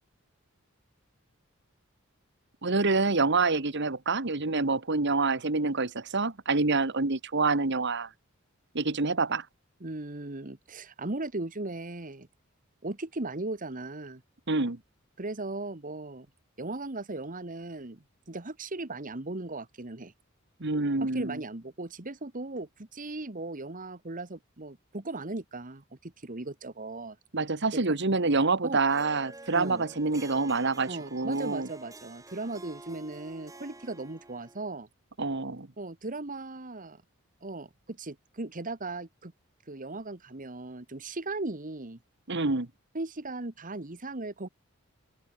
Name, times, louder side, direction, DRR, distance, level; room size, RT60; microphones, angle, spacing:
voice 1, 2.6-8.1 8.7-9.4 14.5-14.8 20.6-21.4 27.3-31.7 35.2-35.7 42.3-42.7, right 3 dB, 55° right, 1.7 m, -27 dB
voice 2, 9.8-12.3 12.8-14.2 15.2-16.3 16.6-20.1 21.0-27.2 28.6-28.8 29.5-29.8 30.9-34.9 35.8-37.0 37.4-39.3 39.7-42.0 42.9-44.5, right 2 dB, 40° right, 1.5 m, -37 dB
Harp, 28.9-34.7, right 2 dB, 15° right, 3.5 m, -49 dB
head